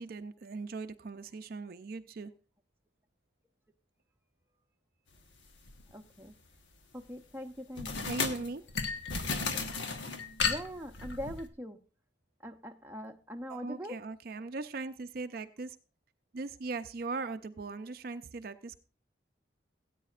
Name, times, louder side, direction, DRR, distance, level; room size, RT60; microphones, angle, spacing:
voice 1, 0.0-2.3 8.1-8.6 13.5-15.8 16.3-18.8, right 3 dB, 50° right, 9 dB, 0.4 m, -39 dB
sound 1, 5.7-5.9 7.8-11.5, left 5 dB, 80° left, 1.1 m, -34 dB
voice 2, 5.9-6.3 6.9-8.1 10.4-11.8 12.4-14.0, equal, 10° right, 4 dB, 0.6 m, -42 dB
17.5 x 9.1 x 2.4 m, 0.34 s
head